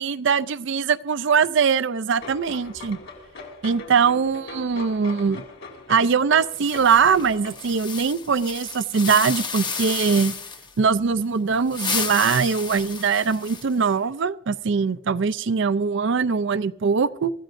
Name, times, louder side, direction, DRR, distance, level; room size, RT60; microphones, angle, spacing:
voice 1, 0.0-3.0 3.6-5.4 5.9-10.4 10.8-17.3, right 5 dB, 60° right, 0.4 m, -22 dB
sound 1, 2.2-7.5, left 3 dB, 65° left, 4.1 m, -41 dB
sound 2, 6.5-10.7 11.5-13.9, left 5 dB, 20° left, 0.9 m, -32 dB
24.0 x 14.5 x 2.6 m
head